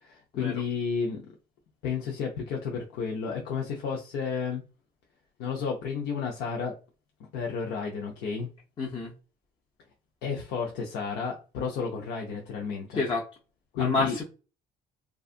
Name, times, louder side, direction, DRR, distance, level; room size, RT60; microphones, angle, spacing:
voice 1, 0.0-1.2 1.8-4.6 5.4-6.8 7.2-8.5 10.2-13.0 13.7-14.2, left 6 dB, 80° left, 0 dB, 0.6 m, -32 dB
voice 2, 8.8-9.1 12.9-13.2 13.8-14.2, left 3 dB, 30° left, -1 dB, 0.6 m, -28 dB
2.6 x 2.3 x 2.4 m, 0.34 s
cardioid pair, 110°, 17 cm